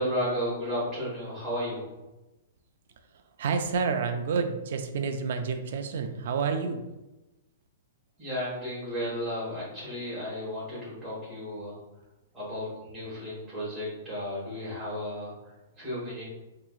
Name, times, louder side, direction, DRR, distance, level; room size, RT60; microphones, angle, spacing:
voice 1, 0.0-1.9 8.2-11.8 12.3-16.2, equal, 5° right, -10 dB, 1.4 m, -33 dB
voice 2, 3.4-6.9, right 5 dB, 50° right, 6 dB, 0.4 m, -29 dB
4.5 x 2.9 x 2.4 m, 1.0 s
hypercardioid pair, 180°, 0 cm